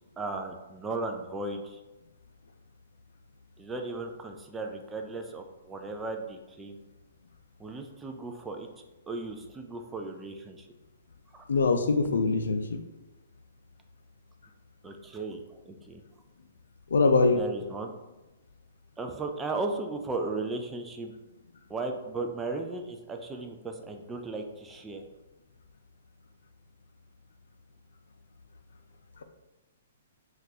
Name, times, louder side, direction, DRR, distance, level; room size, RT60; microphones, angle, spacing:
voice 1, 0.2-1.8 3.6-6.8 7.6-8.7 9.1-10.7 11.3-11.4 14.8-16.0 17.3-17.9 19.0-21.1 21.7-25.0, right 3 dB, 10° right, 4 dB, 0.3 m, -36 dB
voice 2, 11.5-12.8 16.9-17.4, left 3 dB, 85° left, 7 dB, 0.4 m, -23 dB
3.7 x 2.4 x 2.8 m, 1.1 s
hypercardioid pair, 145°, 0 cm